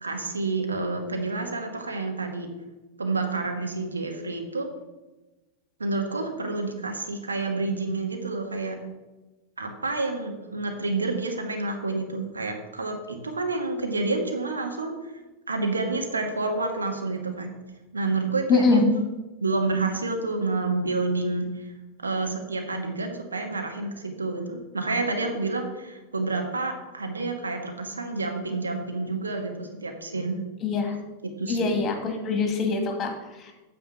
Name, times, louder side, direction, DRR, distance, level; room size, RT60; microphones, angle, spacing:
voice 1, 0.0-2.5 3.0-4.7 5.8-8.8 9.6-15.0 15.5-17.5 17.9-18.8 19.4-21.7 22.0-30.4 31.2-31.7, right 3 dB, 75° right, 4 dB, 1.6 m, -29 dB
voice 2, 18.5-18.9 30.6-31.0 31.5-33.5, left 4 dB, 25° left, 4 dB, 2.2 m, -24 dB
9.3 x 6.9 x 5.6 m, 1.1 s
figure-of-eight pair, 90°, 0 cm